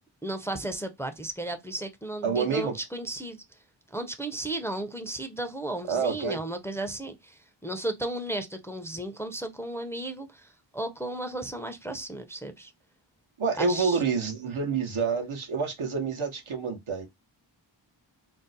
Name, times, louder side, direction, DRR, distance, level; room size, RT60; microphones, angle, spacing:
voice 1, 0.2-3.4 3.9-12.7 13.6-14.0, right 1 dB, 5° left, 0.4 m, -34 dB
voice 2, 2.2-2.8 5.9-6.4 13.4-17.1, right 5 dB, 85° right, 0.8 m, -28 dB
2.6 x 2.0 x 3.8 m
wide cardioid pair, 45°, 48 cm